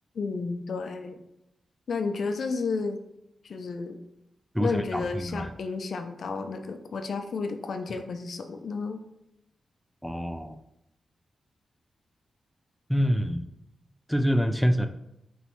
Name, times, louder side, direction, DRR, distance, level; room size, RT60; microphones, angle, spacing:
voice 1, 0.1-1.2 1.9-3.0 3.4-4.0 4.6-9.0, left 4 dB, 70° left, 7 dB, 0.5 m, -32 dB
voice 2, 4.5-5.5 10.0-10.6 12.9-13.5 14.1-14.9, equal, ahead, 7 dB, 0.5 m, -26 dB
5.4 x 3.1 x 3.1 m, 0.83 s
supercardioid pair, 45°, 0 cm